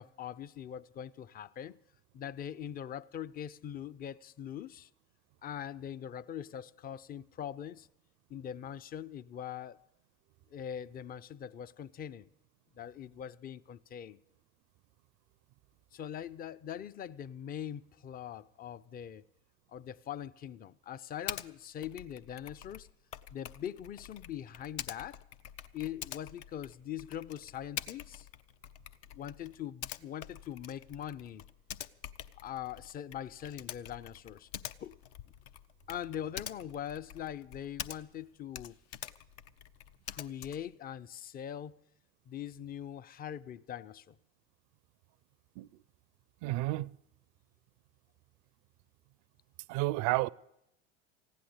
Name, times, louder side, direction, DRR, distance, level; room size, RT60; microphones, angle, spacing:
voice 1, 0.0-1.8 2.1-4.9 5.4-7.9 8.3-9.9 10.5-12.3 12.8-14.2 15.9-19.2 19.7-22.9 23.3-25.2 25.7-28.3 29.1-31.4 32.4-34.5 34.8-35.0 35.9-38.8 40.1-41.8 42.3-44.2, left 9 dB, 25° left, 0.4 m, -42 dB
Typing, 21.3-21.5 21.8-38.2 38.5-40.7, left 10 dB, 65° left, 0.7 m, -46 dB
voice 2, 46.4-46.9 49.7-50.3, right 19 dB, 55° right, 0.4 m, -31 dB
15.5 x 10.0 x 7.9 m
hypercardioid pair, 85°, 36 cm